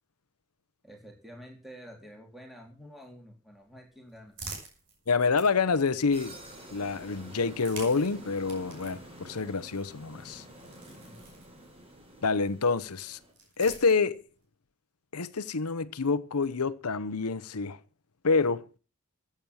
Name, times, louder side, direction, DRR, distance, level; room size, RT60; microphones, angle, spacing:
voice 1, 0.8-4.3 10.9-11.2, equal, ahead, 3.7 m, -49 dB
sound 1, 3.5-6.6 7.4-12.0 13.0-14.4, right 4 dB, 60° right, 5.6 m, -49 dB
voice 2, 5.1-6.4 6.7-10.4 12.2-13.2 13.6-14.2 15.1-17.8 18.2-18.6, left 4 dB, 90° left, 0.9 m, -27 dB
sound 2, 6.1-13.3, right 1 dB, 25° right, 4.4 m, -49 dB
14.5 x 8.7 x 6.3 m
head